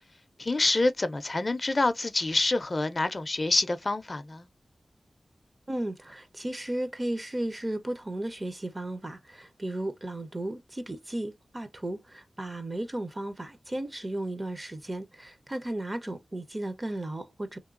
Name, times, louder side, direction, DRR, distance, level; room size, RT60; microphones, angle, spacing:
voice 1, 0.4-4.5, left 2 dB, 35° left, 0.4 m, -27 dB
voice 2, 5.7-17.6, right 1 dB, 25° right, 0.5 m, -35 dB
3.0 x 2.9 x 2.4 m
wide cardioid pair, 115°, 0 cm